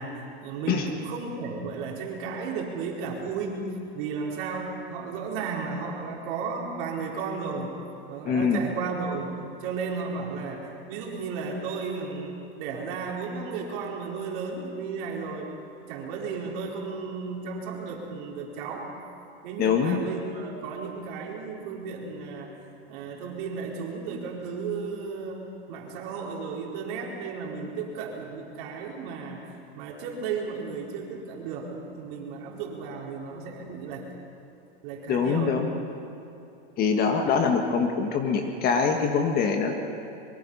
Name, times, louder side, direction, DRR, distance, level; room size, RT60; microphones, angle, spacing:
voice 1, 0.0-7.7 8.1-15.5 15.8-18.9 19.4-22.5 22.9-29.4 29.8-34.1 34.8-35.6, right 5 dB, 50° right, -1 dB, 4.5 m, -34 dB
voice 2, 8.3-8.6 19.6-20.0 35.1-35.7 36.8-39.7, left 6 dB, 30° left, 4 dB, 1.6 m, -24 dB
24.0 x 23.0 x 5.6 m, 2.7 s
supercardioid pair, 155°, 33 cm